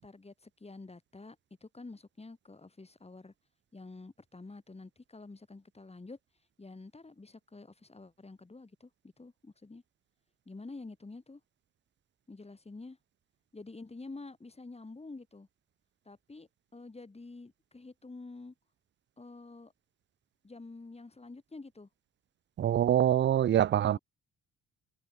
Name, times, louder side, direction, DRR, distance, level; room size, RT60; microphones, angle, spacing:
voice 1, 0.0-3.3 3.7-6.2 6.6-8.9 9.2-9.8 10.4-11.4 12.3-13.0 13.5-15.5 16.0-18.5 19.2-19.7 20.4-21.9 23.8-24.0, left 3 dB, 20° left, 6.8 m, -48 dB
voice 2, 22.6-24.0, right 10 dB, 40° right, 0.5 m, -25 dB
cardioid pair, 90°, 30 cm